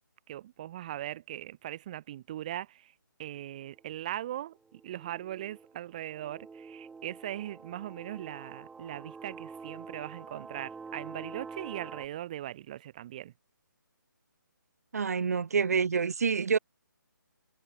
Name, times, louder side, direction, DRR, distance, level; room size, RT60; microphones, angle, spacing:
voice 1, 0.3-2.9 3.2-13.3, right 13 dB, 20° right, 3.5 m, -40 dB
sound 1, 3.7-3.9 4.7-12.1, right 4 dB, 5° right, 2.2 m, -47 dB
voice 2, 14.9-16.6, right 5 dB, 50° right, 3.3 m, -27 dB
hypercardioid pair, 175°, 11 cm